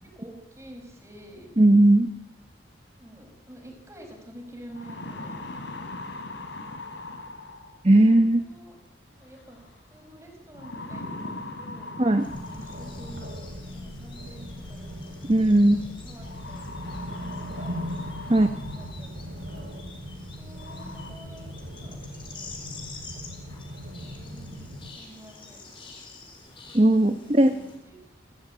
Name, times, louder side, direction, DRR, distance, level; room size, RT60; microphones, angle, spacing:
voice 1, 0.0-1.5 3.0-5.5 8.4-8.8 9.1-9.6 9.9-12.0 12.4-13.4 13.7-15.5 16.0-18.1 18.7-19.8 20.4-22.0 24.1-26.0 27.1-28.0 28.3-28.4, right 1 dB, 15° right, 2 dB, 5.5 m, -48 dB
voice 2, 1.6-2.1 7.8-8.4 12.0-12.2 15.3-15.8 18.3-18.5 26.7-27.5, right 1 dB, 30° right, 9 dB, 0.9 m, -17 dB
sound 1, 4.0-4.1 4.5-7.9 9.3-9.8 10.5-13.3 14.6-14.7 16.2-19.1 19.6-19.7 20.2-20.3 20.6-21.1, left 2 dB, 85° left, 3.6 m, -40 dB
sound 2, 12.2-27.8, left 3 dB, 30° left, 4.3 m, -48 dB
sound 3, 12.3-24.9, equal, 65° right, 2.9 m, -39 dB
29.0 x 13.5 x 8.7 m, 0.89 s
head